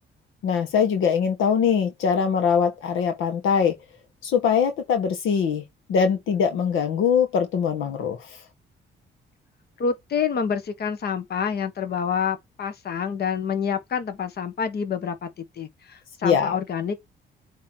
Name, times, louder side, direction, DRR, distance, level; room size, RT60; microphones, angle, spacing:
voice 1, 0.4-3.8 4.2-5.6 5.9-8.4 16.2-16.6, left 7 dB, 85° left, 1.4 m, -22 dB
voice 2, 9.8-17.0, left 6 dB, 55° left, 1.3 m, -27 dB
8.3 x 3.0 x 4.5 m
cardioid pair, 90°, 20 cm